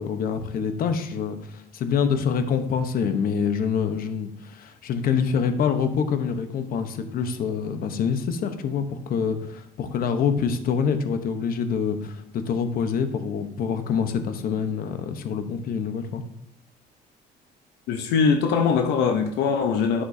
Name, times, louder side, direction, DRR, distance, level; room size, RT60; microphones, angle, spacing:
voice 1, 0.0-16.2, left 6 dB, 60° left, 8 dB, 0.9 m, -26 dB
voice 2, 17.9-20.0, left 6 dB, 85° left, 5 dB, 0.7 m, -22 dB
11.0 x 6.0 x 2.7 m, 0.73 s
cardioid pair, 110°, 17 cm